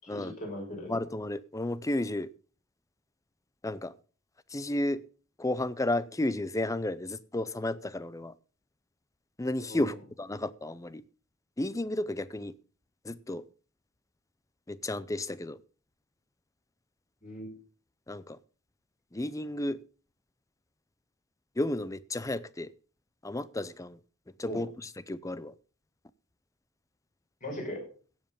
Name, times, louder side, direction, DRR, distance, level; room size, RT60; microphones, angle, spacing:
voice 1, 0.0-0.9 9.7-9.9 17.2-17.5 24.4-24.6 27.4-27.8, equal, 35° left, 6.1 m, -38 dB
voice 2, 0.9-2.3 3.6-3.9 4.5-5.0 5.4-8.3 9.4-11.0 11.6-12.5 13.0-13.4 14.7-15.6 18.1-18.4 19.1-19.8 21.6-22.7 23.2-24.0 24.4-25.5, left 1 dB, 15° left, 0.5 m, -32 dB
16.5 x 7.6 x 5.4 m
head